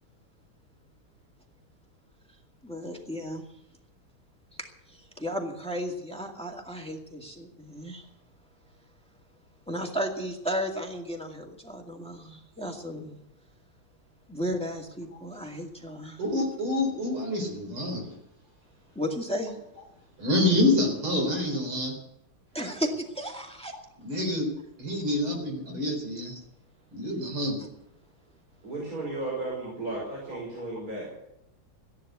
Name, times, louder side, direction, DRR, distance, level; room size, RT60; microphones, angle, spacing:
voice 1, 2.6-3.4 4.6-4.7 5.2-8.0 9.7-13.2 14.3-16.2 19.0-19.6 22.5-23.7 26.2-26.4, equal, 5° left, 2 dB, 1.8 m, -34 dB
voice 2, 16.2-18.0 20.2-21.9 24.0-24.5 24.8-26.3 26.9-27.6, left 1 dB, 85° right, 2 dB, 5.1 m, -27 dB
voice 3, 28.6-31.1, right 2 dB, 40° right, -4 dB, 5.4 m, -34 dB
15.0 x 10.5 x 8.2 m, 0.82 s
omnidirectional pair, 2.3 m